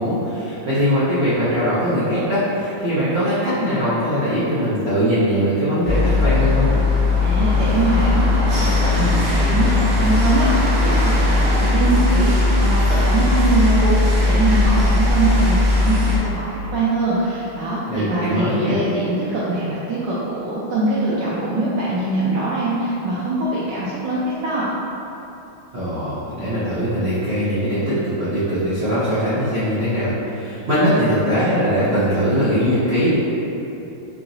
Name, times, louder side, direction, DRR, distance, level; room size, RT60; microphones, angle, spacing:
voice 1, 0.0-6.7 17.9-18.8 25.7-33.1, equal, 90° right, -12 dB, 0.5 m, -21 dB
sound 1, 5.8-16.2, left 2 dB, 50° right, 1.0 m, -18 dB
voice 2, 7.2-24.7, right 2 dB, 75° right, -8 dB, 1.1 m, -22 dB
4.6 x 2.8 x 2.6 m, 3.0 s
omnidirectional pair, 2.2 m